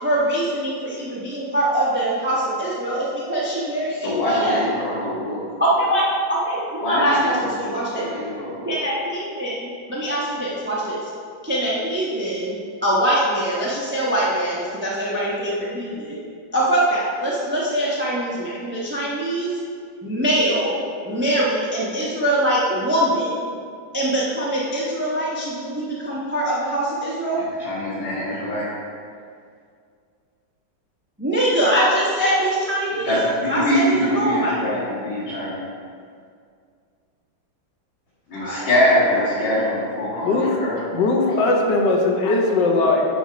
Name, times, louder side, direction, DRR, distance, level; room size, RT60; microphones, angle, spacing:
voice 1, 0.0-4.6 5.6-6.0 6.3-8.1 8.6-11.0 11.4-16.2 16.5-19.5 20.0-20.7 21.0-23.5 23.9-27.4 31.2-33.2 33.5-34.5 38.4-38.7 39.1-39.5, right 1 dB, 10° right, -7 dB, 0.7 m, -23 dB
voice 2, 4.0-5.4 6.8-8.7 27.4-28.6 33.0-35.6 38.3-40.7, equal, 90° left, -13 dB, 2.8 m, -23 dB
voice 3, 40.2-40.6 40.9-43.1, left 3 dB, 70° left, 0 dB, 1.5 m, -19 dB
9.2 x 3.6 x 5.1 m, 2.2 s
omnidirectional pair, 2.1 m